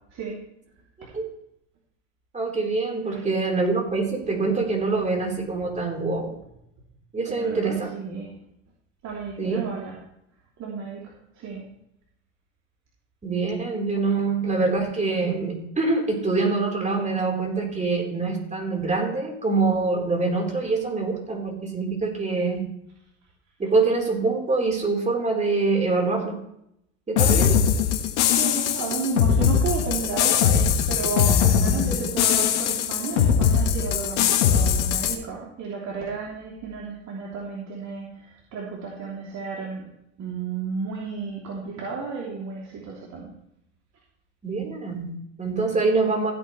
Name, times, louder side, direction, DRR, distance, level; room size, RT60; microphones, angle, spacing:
voice 1, 2.3-6.4 7.1-7.9 9.4-9.6 13.2-22.7 23.6-26.4 27.1-27.6 44.4-46.3, right 3 dB, 20° right, 0 dB, 4.2 m, -25 dB
voice 2, 7.3-8.3 9.0-10.0 10.6-11.0 11.4-11.6 28.2-38.2 38.5-39.9 40.2-43.3, right 5 dB, 50° right, -3 dB, 3.2 m, -32 dB
sound 1, 27.2-35.2, left 8 dB, 75° left, 1.6 m, -21 dB
16.0 x 8.8 x 3.3 m, 0.77 s
hypercardioid pair, 80°, 35 cm